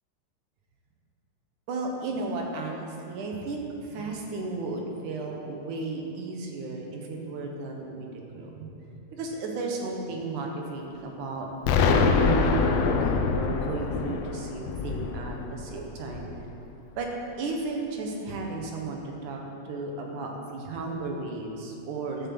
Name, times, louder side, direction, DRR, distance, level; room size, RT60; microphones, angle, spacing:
voice 1, 1.7-8.1 8.3-8.7 9.1-11.5 11.8-16.3 17.0-17.1 17.4-19.4 19.6-22.3, right 3 dB, 65° right, 1 dB, 2.7 m, -34 dB
Explosion, 11.6-16.5, left 5 dB, 85° left, 1.5 m, -25 dB
12.0 x 7.7 x 7.8 m, 2.7 s
omnidirectional pair, 4.0 m